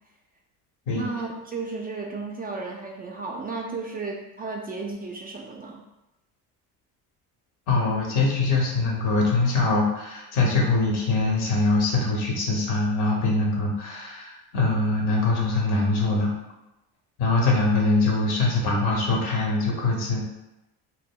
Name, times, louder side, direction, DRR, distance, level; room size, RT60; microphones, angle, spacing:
voice 1, 0.9-5.8, right 3 dB, 25° right, -1 dB, 0.3 m, -34 dB
voice 2, 7.7-16.3 17.2-20.2, left 3 dB, 70° left, -1 dB, 1.0 m, -23 dB
2.1 x 2.1 x 3.5 m, 0.94 s
supercardioid pair, 80°, 41 cm